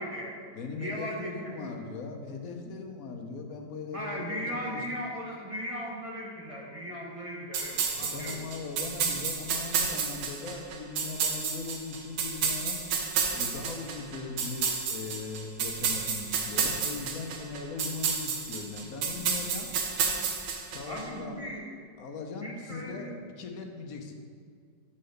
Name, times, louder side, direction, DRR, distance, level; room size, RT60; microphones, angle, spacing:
voice 1, 0.0-0.4 0.8-1.8 3.9-8.4 20.8-21.6 22.4-23.1, equal, 30° right, -2 dB, 0.6 m, -37 dB
voice 2, 0.6-4.8 7.9-12.8 13.3-19.7 20.7-21.4 22.0-24.1, left 4 dB, 60° left, 4 dB, 1.0 m, -39 dB
sound 1, 7.5-21.0, right 6 dB, 85° right, 1.6 m, -31 dB
6.7 x 5.7 x 6.5 m, 2.2 s
omnidirectional pair, 2.1 m